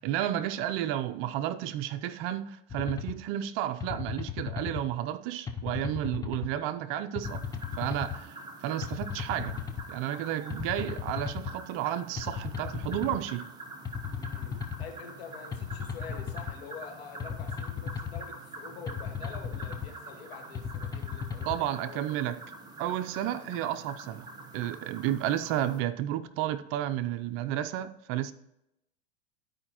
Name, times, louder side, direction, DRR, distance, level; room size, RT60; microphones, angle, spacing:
voice 1, 0.0-7.4 7.8-9.6 9.9-13.5 21.5-22.3 22.8-28.3, right 12 dB, 45° right, 0.5 m, -32 dB
sound 1, 2.7-3.2 3.8-4.8 5.5-6.5 7.2-8.2 8.8-9.9 10.5-11.5 12.2-13.2 13.9-14.9 15.5-16.6 17.2-18.2 18.9-19.9 20.5-21.6, left 7 dB, 10° left, 0.5 m, -36 dB
sound 2, 7.2-25.8, right 2 dB, 15° right, 1.0 m, -46 dB
voice 2, 14.2-22.4 23.2-23.5, left 5 dB, 80° left, 1.7 m, -46 dB
12.0 x 4.9 x 2.9 m
supercardioid pair, 130°, 30 cm